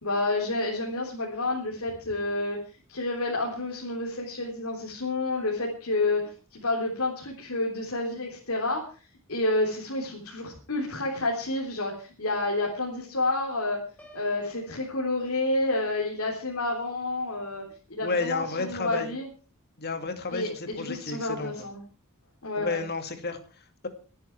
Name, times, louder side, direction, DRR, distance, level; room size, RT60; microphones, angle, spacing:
voice 1, 0.0-2.6 2.9-13.8 14.1-17.6 17.9-19.3 20.3-21.8 22.4-22.8, left 2 dB, 70° left, -1 dB, 3.6 m, -29 dB
Piano, 14.0-15.9, left 1 dB, 5° left, 3.5 m, -53 dB
voice 2, 18.0-19.2 19.8-21.7 22.6-23.9, left 3 dB, 45° left, 7 dB, 2.4 m, -32 dB
24.0 x 9.7 x 4.6 m, 0.38 s
head